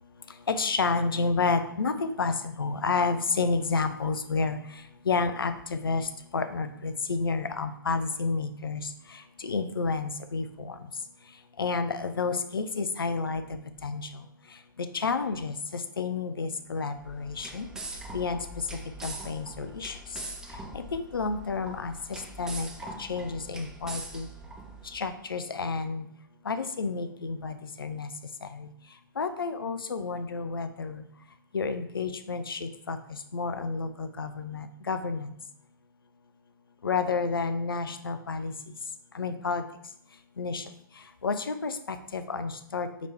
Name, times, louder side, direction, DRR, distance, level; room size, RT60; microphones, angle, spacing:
voice 1, 0.5-4.6 5.1-8.9 9.4-10.8 11.6-14.2 14.9-17.6 18.1-18.4 19.0-20.0 20.7-22.7 23.0-24.3 24.8-26.1 26.5-28.1 28.5-28.7 29.2-31.0 31.5-35.4 36.8-38.5 39.1-39.6 40.4-40.6 41.2-43.1, left 4 dB, 80° left, 9 dB, 0.4 m, -30 dB
sound 1, 17.0-25.1, right 2 dB, 5° right, 0.3 m, -42 dB
5.0 x 3.3 x 2.7 m, 0.70 s
figure-of-eight pair, 120°, 12 cm